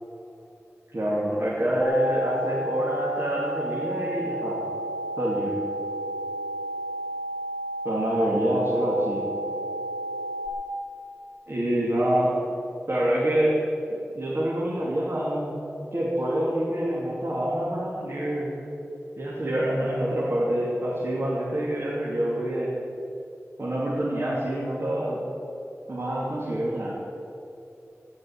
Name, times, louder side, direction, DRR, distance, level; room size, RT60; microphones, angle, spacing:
voice 1, 0.9-4.6 5.2-5.6 7.8-9.2 11.5-12.3 12.9-13.6 13.9-15.6 15.9-18.5 19.2-22.7 23.6-25.2 25.9-27.0, right 1 dB, 55° right, -7 dB, 3.1 m, -26 dB
sound 1, 1.8-10.5, right 1 dB, 55° left, 2.8 m, -32 dB
18.0 x 6.4 x 9.0 m, 2.8 s
wide cardioid pair, 60°, 5 cm